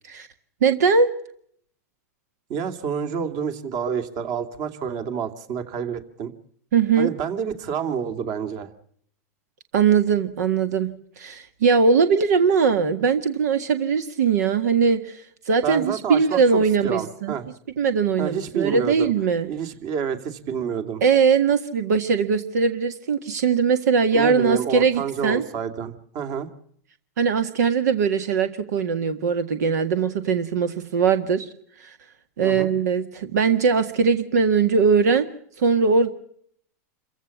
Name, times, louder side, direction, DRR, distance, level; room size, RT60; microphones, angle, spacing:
voice 1, 0.6-1.1 6.7-7.1 9.7-15.2 15.5-17.4 17.8-19.5 21.0-25.4 27.2-31.5 31.8-31.9 32.4-35.3 35.6-36.1, right 5 dB, 85° right, 9 dB, 1.8 m, -20 dB
voice 2, 2.5-6.3 6.9-8.7 15.6-17.4 18.2-19.1 19.4-21.0 24.1-26.5 32.4-32.7, right 7 dB, 50° right, 8 dB, 2.7 m, -28 dB
28.0 x 15.5 x 7.2 m, 0.64 s
supercardioid pair, 130°, 9 cm